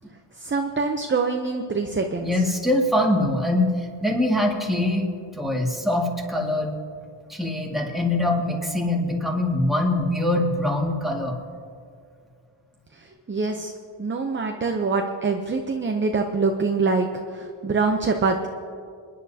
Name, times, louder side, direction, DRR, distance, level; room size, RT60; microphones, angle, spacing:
voice 1, 0.4-2.3 13.0-13.7 14.0-18.5, right 4 dB, 25° right, 4 dB, 0.6 m, -25 dB
voice 2, 2.2-6.7 7.3-11.4, left 1 dB, ahead, -2 dB, 1.9 m, -23 dB
29.0 x 10.5 x 2.8 m, 2.3 s
wide cardioid pair, 125°, 50 cm